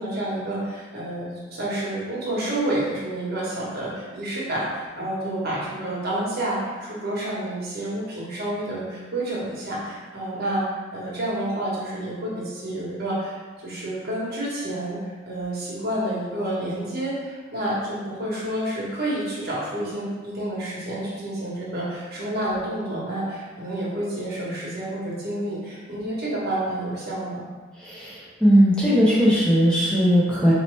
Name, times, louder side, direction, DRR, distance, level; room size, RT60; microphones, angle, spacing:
voice 1, 0.0-13.3 13.6-27.4, right 1 dB, 55° right, -6 dB, 1.2 m, -29 dB
voice 2, 27.8-30.5, equal, 5° left, -8 dB, 0.8 m, -18 dB
4.0 x 2.9 x 3.2 m, 1.4 s
head